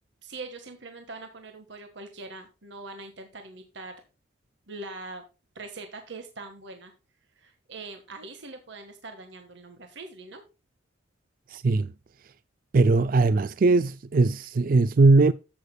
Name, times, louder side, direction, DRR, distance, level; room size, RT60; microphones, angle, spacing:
voice 1, 0.2-3.9 4.7-5.2 5.5-6.9 7.4-10.4, right 3 dB, 70° right, 1.5 m, -42 dB
voice 2, 11.5-11.9 12.7-15.3, right 3 dB, 45° right, 0.4 m, -20 dB
11.5 x 8.2 x 2.2 m
head